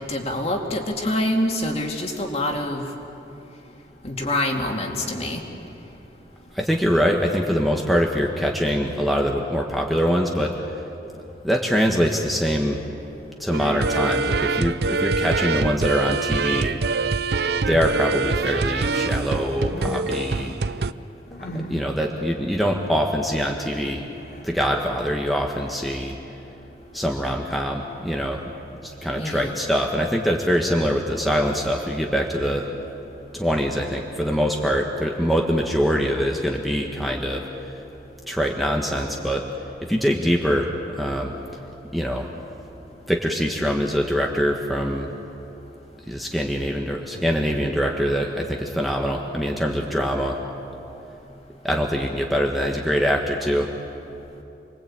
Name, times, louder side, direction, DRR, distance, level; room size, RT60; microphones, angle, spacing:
voice 1, 0.0-2.8 4.0-5.4 29.2-29.5, left 1 dB, 35° left, 2 dB, 2.6 m, -26 dB
voice 2, 6.5-10.5 11.4-12.8 13.4-16.8 17.7-20.5 21.7-24.2 24.4-26.2 26.9-28.4 28.7-32.7 33.3-37.5 38.3-39.4 39.9-40.7 40.9-41.3 41.9-42.3 43.1-45.1 46.1-50.4 51.6-53.7, equal, ahead, 0 dB, 1.4 m, -23 dB
sound 1, 13.5-20.9, right 4 dB, 60° right, 0.5 m, -24 dB
sound 2, 17.7-18.2 18.4-19.3 19.5-20.5 20.8-24.5, equal, 55° left, 3.0 m, -38 dB
28.5 x 21.5 x 8.8 m, 3.0 s
head